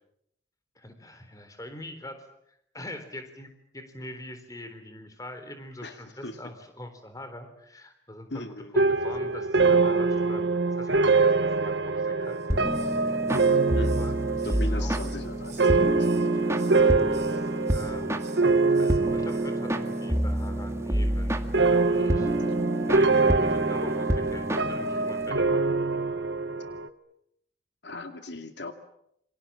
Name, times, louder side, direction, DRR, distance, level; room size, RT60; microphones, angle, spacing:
voice 1, 0.8-8.5 8.7-12.7 13.0-13.3 13.9-14.1 14.4-14.9 16.3-18.1 18.8-22.3 22.6-25.8, left 1 dB, 20° left, 8 dB, 3.8 m, -44 dB
voice 2, 5.8-6.4 8.3-8.7 13.7-14.0 14.4-16.1 22.0-22.4 23.5-23.7 27.8-28.7, left 1 dB, 75° left, 7 dB, 2.4 m, -39 dB
sound 1, 8.8-20.2 20.5-21.1 21.5-26.9, right 3 dB, 80° right, 1.3 m, -25 dB
Hiss, 12.3-13.0 13.3-15.7 16.0-16.8 17.1-17.4 17.7-18.4 18.7-19.0 19.3-19.5 19.8-20.1 20.3-20.5, right 10 dB, 40° right, 4.7 m, -51 dB
sound 2, 12.5-25.3, equal, 15° right, 2.0 m, -29 dB
28.0 x 25.0 x 7.4 m, 0.76 s
head